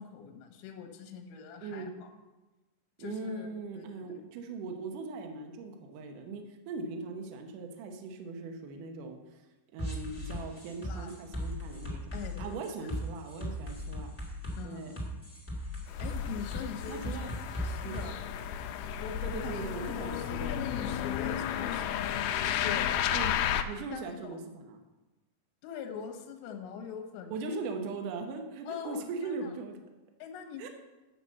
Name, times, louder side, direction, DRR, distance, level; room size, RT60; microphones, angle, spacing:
voice 1, 0.0-2.1 3.0-4.2 10.8-11.1 12.1-12.9 14.6-15.2 16.0-17.2 17.6-18.2 19.0-19.5 20.0-22.9 23.9-24.4 25.6-27.6 28.7-29.5 30.2-30.7, left 7 dB, 70° left, 4 dB, 2.8 m, -43 dB
voice 2, 1.6-1.9 3.0-9.4 9.7-14.1 14.6-14.9 16.9-17.3 17.8-18.1 19.2-20.6 23.1-23.3 23.7-24.8 27.3-29.8 30.6-30.7, right 3 dB, 70° right, 4 dB, 2.0 m, -40 dB
sound 1, 9.8-18.0, left 1 dB, 15° left, 0.4 m, -38 dB
sound 2, 15.9-23.6, left 10 dB, 90° left, 2.2 m, -33 dB
8.8 x 6.0 x 7.4 m, 1.1 s
omnidirectional pair, 5.0 m